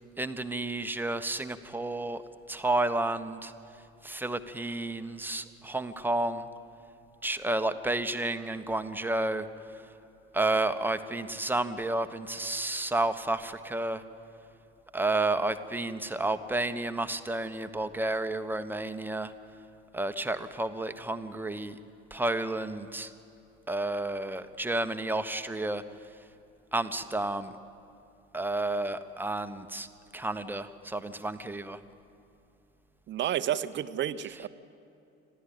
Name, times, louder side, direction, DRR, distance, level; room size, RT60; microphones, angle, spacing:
voice 1, 0.2-2.2 2.5-3.5 4.0-6.5 7.2-9.5 9.7-9.8 10.3-14.0 14.9-19.3 19.9-21.8 22.1-23.1 23.7-25.8 26.7-27.6 28.3-29.9 30.1-31.8, right 2 dB, 5° right, 9 dB, 1.1 m, -31 dB
voice 2, 33.1-34.5, right 11 dB, 35° right, 12 dB, 0.8 m, -30 dB
26.0 x 15.5 x 8.6 m, 2.8 s
figure-of-eight pair, 65°, 33 cm